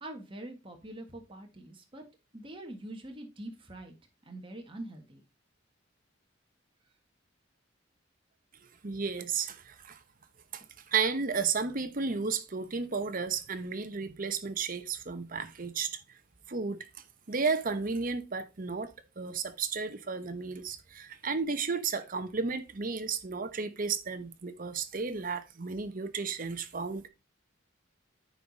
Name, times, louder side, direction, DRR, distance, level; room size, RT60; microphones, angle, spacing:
voice 1, 0.0-2.0 2.3-3.9 4.2-5.2, right 1 dB, 25° right, 1.6 m, -44 dB
voice 2, 8.8-10.0 10.5-16.0 16.5-16.9 17.3-27.1, right 5 dB, 45° right, 1.0 m, -33 dB
9.2 x 4.9 x 4.1 m
head